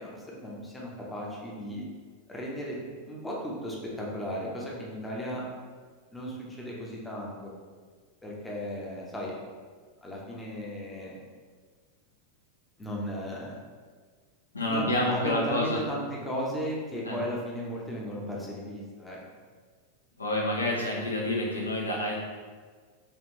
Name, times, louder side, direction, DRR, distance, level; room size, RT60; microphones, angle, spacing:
voice 1, 0.0-1.8 2.3-2.8 3.0-5.5 6.1-7.5 8.2-9.3 10.0-11.2 12.8-13.5 14.7-19.2, equal, 10° left, -4 dB, 0.6 m, -36 dB
voice 2, 14.5-15.8 17.0-17.2 20.2-22.2, left 1 dB, 75° left, -2 dB, 0.5 m, -28 dB
3.4 x 2.4 x 2.7 m, 1.6 s
figure-of-eight pair, 90°, 0 cm